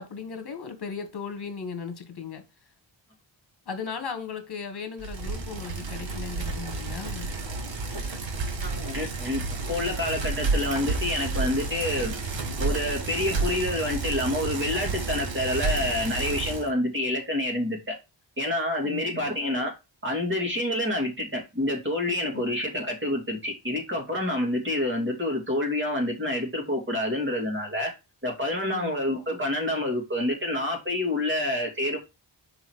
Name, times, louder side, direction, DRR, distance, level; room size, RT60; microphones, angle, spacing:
voice 1, 0.0-2.4 3.7-7.3 18.8-19.3 22.3-22.4 28.6-28.9, left 5 dB, 55° left, 1.5 m, -37 dB
Bicycle, 5.0-16.7, right 3 dB, 75° right, 1.4 m, -31 dB
voice 2, 8.5-9.4 9.7-12.1 12.4-18.0 18.4-19.7 20.0-27.9 28.2-32.0, left 1 dB, 25° right, 2.3 m, -28 dB
5.7 x 4.0 x 4.6 m
wide cardioid pair, 135°, 46 cm